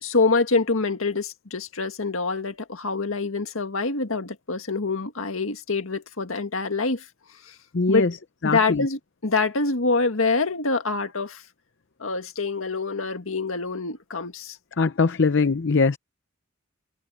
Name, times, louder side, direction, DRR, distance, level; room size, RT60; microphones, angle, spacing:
voice 1, 0.0-7.1 7.4-7.6 7.9-8.1 8.4-11.4 12.0-14.6, left 3 dB, 80° left, 1.9 m, -25 dB
voice 2, 7.7-8.1 8.4-8.9 14.8-16.0, left 4 dB, 60° left, 0.7 m, -21 dB
head